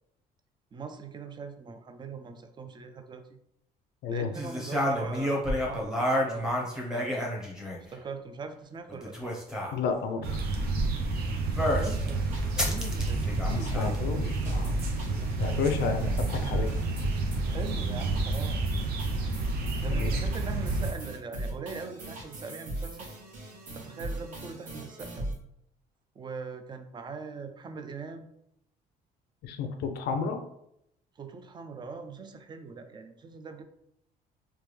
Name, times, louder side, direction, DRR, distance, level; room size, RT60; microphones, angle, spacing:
voice 1, 0.7-3.4 4.1-6.0 6.3-7.3 7.9-9.2 11.8-13.2 13.5-14.0 17.5-18.6 19.8-23.1 23.7-25.3 26.2-28.3 31.2-33.6, right 5 dB, 25° right, 7 dB, 0.4 m, -41 dB
sound 1, 4.3-7.9 8.9-9.7 11.6-12.0 12.6-14.0, equal, 5° right, 0.8 m, -30 dB
voice 2, 9.7-10.4 13.5-14.8 15.4-16.7 19.9-20.1 29.4-30.4, left 5 dB, 75° left, 7 dB, 0.5 m, -31 dB
sound 2, 10.2-20.9, right 3 dB, 65° right, 0.6 m, -30 dB
sound 3, 12.3-25.3, right 1 dB, 50° right, 1.2 m, -38 dB
3.3 x 2.2 x 3.1 m, 0.75 s
cardioid pair, 110°, 17 cm